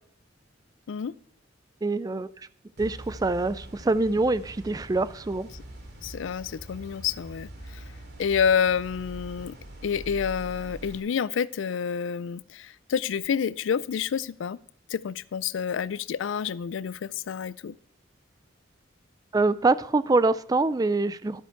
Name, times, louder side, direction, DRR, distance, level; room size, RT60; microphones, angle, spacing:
voice 1, 1.8-2.3 2.8-5.5 19.3-21.4, right 3 dB, 20° right, 0.3 m, -24 dB
sound 1, 2.8-11.0, right 1 dB, 60° right, 2.6 m, -43 dB
voice 2, 6.0-7.8 8.2-9.6 9.8-14.6 14.9-17.7, left 7 dB, 80° left, 0.4 m, -28 dB
12.0 x 7.9 x 4.5 m
head